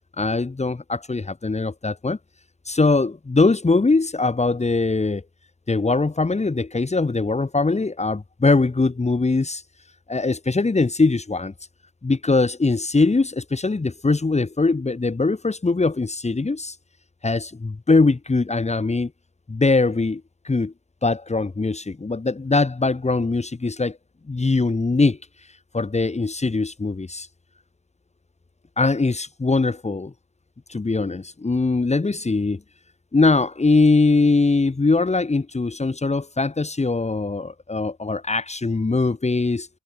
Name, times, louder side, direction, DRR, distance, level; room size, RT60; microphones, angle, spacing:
voice 1, 0.2-2.2 2.7-5.2 5.7-9.6 10.1-11.5 12.0-16.8 17.2-19.1 19.5-20.7 21.0-24.0 24.3-25.2 25.7-27.3 28.8-30.1 30.7-32.6 33.1-39.7, left 3 dB, 20° left, 4.5 m, -21 dB
cardioid pair, 90°, 30 cm